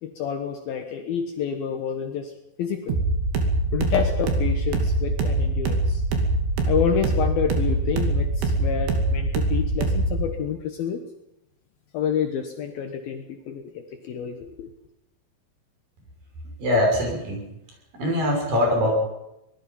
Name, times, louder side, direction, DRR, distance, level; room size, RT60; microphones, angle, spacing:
voice 1, 0.0-2.3 2.6-3.0 3.7-6.0 6.7-11.0 11.9-14.7, left 8 dB, 65° left, 5 dB, 2.9 m, -28 dB
sound 1, 2.9-10.3, right 2 dB, 75° right, 4.7 m, -23 dB
voice 2, 16.6-17.5 17.9-18.9, left 1 dB, 55° right, 0 dB, 7.6 m, -22 dB
24.5 x 20.5 x 5.7 m, 0.88 s
omnidirectional pair, 4.9 m